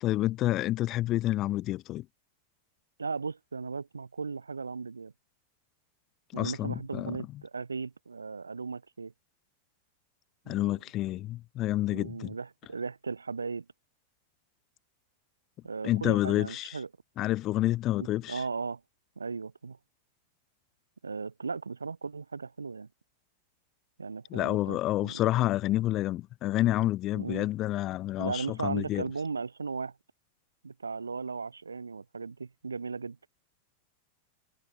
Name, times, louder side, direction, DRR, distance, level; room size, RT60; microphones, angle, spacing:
voice 1, 0.0-2.0 6.3-7.1 10.5-12.4 15.8-16.8 17.2-18.4 24.3-29.0, left 15 dB, 35° left, 1.7 m, -29 dB
voice 2, 3.0-5.1 6.3-9.1 10.4-10.7 11.9-13.6 15.6-16.9 18.0-18.8 19.2-19.8 21.0-22.9 24.0-25.2 27.1-27.5 28.2-30.0 30.6-33.2, right 4 dB, 75° right, 2.9 m, -37 dB
figure-of-eight pair, 90°, 0 cm